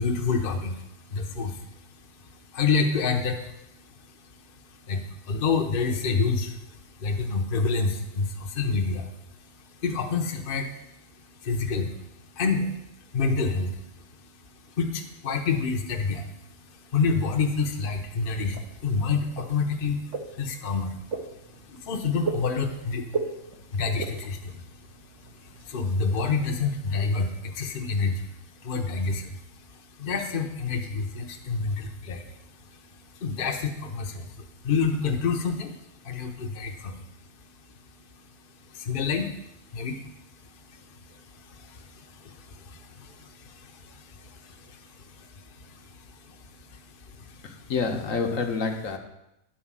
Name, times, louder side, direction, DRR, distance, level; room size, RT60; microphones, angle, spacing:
voice 1, 0.0-47.7, left 4 dB, 40° left, 3 dB, 0.9 m, -30 dB
sound 1, 18.1-26.3, right 4 dB, 60° right, 1.3 m, -38 dB
voice 2, 47.4-49.0, left 4 dB, 65° left, 3 dB, 1.3 m, -28 dB
10.5 x 4.4 x 7.4 m, 0.85 s
omnidirectional pair, 1.5 m